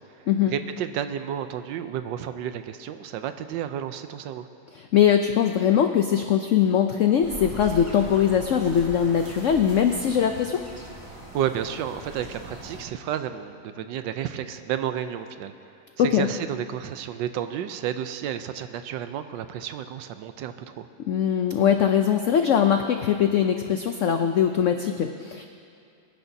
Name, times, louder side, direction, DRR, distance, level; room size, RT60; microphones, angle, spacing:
voice 1, 0.1-4.5 11.3-15.5 16.0-20.9, right 9 dB, 85° right, 10 dB, 1.3 m, -31 dB
voice 2, 4.7-10.6 16.0-16.3 21.1-25.4, left 8 dB, 85° left, 6 dB, 0.6 m, -21 dB
sound 1, 7.2-12.8, right 1 dB, 20° right, 1.6 m, -41 dB
24.5 x 10.0 x 2.7 m, 2.5 s
omnidirectional pair, 2.0 m